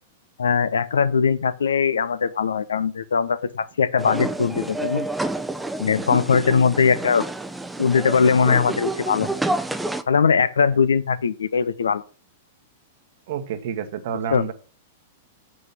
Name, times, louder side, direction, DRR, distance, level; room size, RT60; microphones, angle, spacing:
voice 1, 0.4-5.0 5.8-7.2 7.8-9.4 10.1-12.0 14.3-14.5, left 6 dB, 75° left, 0.7 m, -20 dB
sound 1, 4.0-10.0, right 2 dB, 5° right, 0.7 m, -29 dB
voice 2, 13.3-14.5, right 8 dB, 55° right, 1.3 m, -29 dB
7.7 x 6.3 x 5.7 m
figure-of-eight pair, 100°, 0 cm